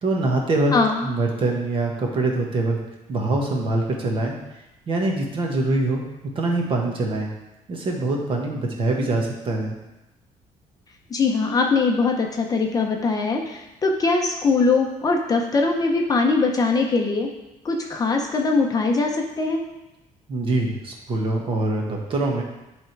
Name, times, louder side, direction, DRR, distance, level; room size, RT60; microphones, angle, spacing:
voice 1, 0.0-0.7 1.0-2.8 3.1-4.4 4.9-6.0 6.3-7.3 7.7-9.8 20.3-22.4, right 2 dB, 40° right, 0 dB, 1.4 m, -24 dB
voice 2, 0.7-1.0 11.1-17.3 17.6-19.6, left 3 dB, 25° left, 2 dB, 0.7 m, -21 dB
10.5 x 3.6 x 4.6 m, 0.97 s
cardioid pair, 160°, 14 cm